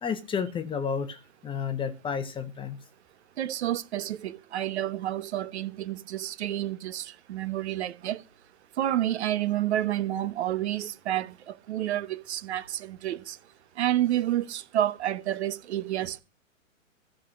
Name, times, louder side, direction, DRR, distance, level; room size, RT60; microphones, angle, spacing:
voice 1, 0.0-2.8, left 6 dB, 10° left, 1.1 m, -31 dB
voice 2, 3.4-8.2 8.8-13.4 13.8-16.2, right 12 dB, 55° right, 1.3 m, -29 dB
13.5 x 6.3 x 6.2 m
hypercardioid pair, 130°, 40 cm